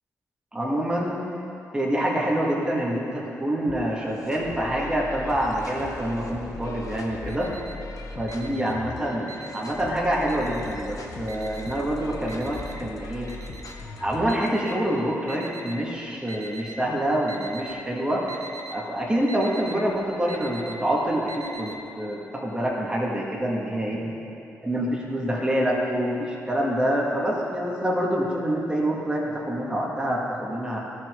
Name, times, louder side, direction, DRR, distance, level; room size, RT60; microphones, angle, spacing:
voice 1, 0.6-1.2 1.7-7.5 8.1-13.3 14.0-18.2 18.7-24.1 24.6-30.8, right 1 dB, 15° right, -4 dB, 1.9 m, -26 dB
sound 1, 3.6-14.5, left 3 dB, 60° left, 0.9 m, -39 dB
Alarm, 6.9-7.9 8.2-9.9 10.3-10.9 11.3-15.8 16.3-16.9 17.2-17.8 18.1-21.8, right 2 dB, 60° right, 1.0 m, -42 dB
12.5 x 6.2 x 3.8 m, 2.9 s
supercardioid pair, 50°, 6 cm